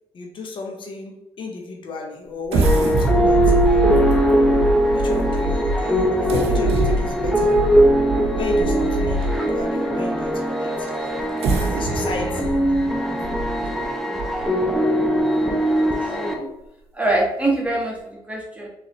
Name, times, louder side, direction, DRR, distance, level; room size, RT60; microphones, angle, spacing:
voice 1, 0.1-3.8 4.9-7.5 8.3-11.1 11.6-12.5, left 3 dB, 55° left, 2 dB, 0.8 m, -34 dB
sound 1, 2.5-9.6 10.2-10.3 11.2-14.7 15.2-15.3 15.7-15.9, right 2 dB, 80° right, 0.6 m, -24 dB
sound 2, 2.6-16.3, right 1 dB, ahead, 0.8 m, -21 dB
voice 2, 9.4-9.8 14.4-14.7 16.0-16.5 16.9-18.7, right 2 dB, 15° right, -2 dB, 1.3 m, -25 dB
3.8 x 3.0 x 2.9 m, 0.90 s
supercardioid pair, 60°, 10 cm